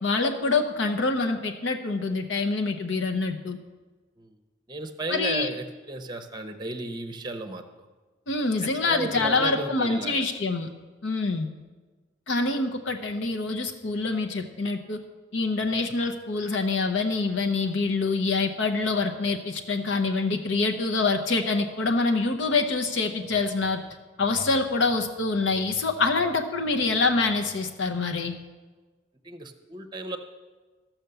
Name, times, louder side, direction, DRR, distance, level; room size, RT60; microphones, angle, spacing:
voice 1, 0.0-3.6 5.1-5.5 8.3-10.7 11.0-11.5 12.3-15.0 15.3-23.8 24.2-28.3, left 3 dB, 70° left, 4 dB, 0.8 m, -26 dB
voice 2, 4.7-7.6 8.6-10.3 29.2-30.2, right 2 dB, 20° right, 7 dB, 0.7 m, -34 dB
13.5 x 5.8 x 6.8 m, 1.3 s
head